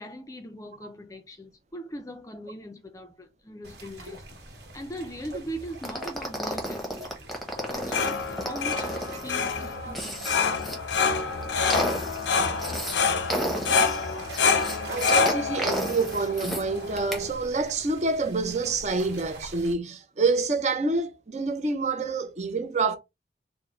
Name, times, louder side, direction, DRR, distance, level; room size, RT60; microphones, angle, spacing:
voice 1, 0.0-4.2 4.7-7.2 7.7-10.7, equal, 20° left, 0.4 m, -40 dB
sound 1, 3.6-19.7, right 2 dB, 65° right, 1.3 m, -45 dB
sound 2, 5.8-10.8 11.2-13.0 13.3-16.6 17.0-17.2, equal, ahead, 0.8 m, -32 dB
sound 3, 7.6-17.3, left 5 dB, 85° left, 0.6 m, -27 dB
voice 2, 14.9-23.0, right 3 dB, 40° right, 0.5 m, -27 dB
3.8 x 2.1 x 3.0 m
head